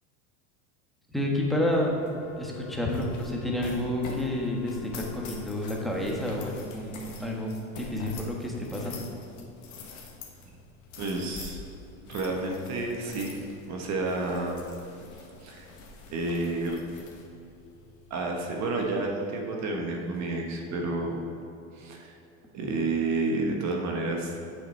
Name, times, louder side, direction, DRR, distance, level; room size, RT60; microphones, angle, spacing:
voice 1, 1.1-2.0 2.4-9.0, left 1 dB, ahead, -2 dB, 1.4 m, -30 dB
sound 1, 1.7-18.9, left 3 dB, 45° left, 1.5 m, -45 dB
Wind instrument woodwind instrument, 2.0-6.6, left 11 dB, 85° left, 0.8 m, -47 dB
voice 2, 11.0-11.6 12.1-14.6 15.4-15.7 16.1-16.8 18.1-21.2 21.7-22.2 22.5-24.4, right 2 dB, 40° right, 1 dB, 1.2 m, -30 dB
8.0 x 6.3 x 4.2 m, 2.7 s
hypercardioid pair, 105°, 41 cm